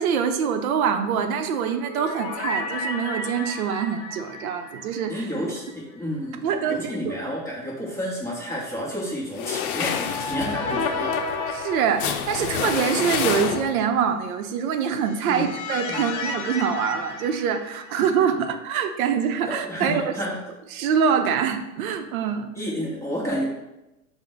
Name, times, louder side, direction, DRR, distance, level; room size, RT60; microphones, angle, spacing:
voice 1, 0.0-5.2 6.4-7.1 11.5-20.1 20.7-22.5, right 7 dB, 75° right, 7 dB, 0.6 m, -24 dB
sound 1, 1.4-5.7 6.0-6.1 9.6-12.7 14.8-18.2, left 3 dB, 40° left, 0.5 m, -32 dB
voice 2, 5.1-11.2 15.3-15.5 15.9-16.0 18.3-18.4 19.5-20.4 22.5-23.4, equal, 5° left, -5 dB, 0.7 m, -30 dB
sound 2, 9.3-14.0, left 8 dB, 85° left, 0.5 m, -28 dB
4.6 x 2.1 x 3.7 m, 0.96 s
supercardioid pair, 140°, 43 cm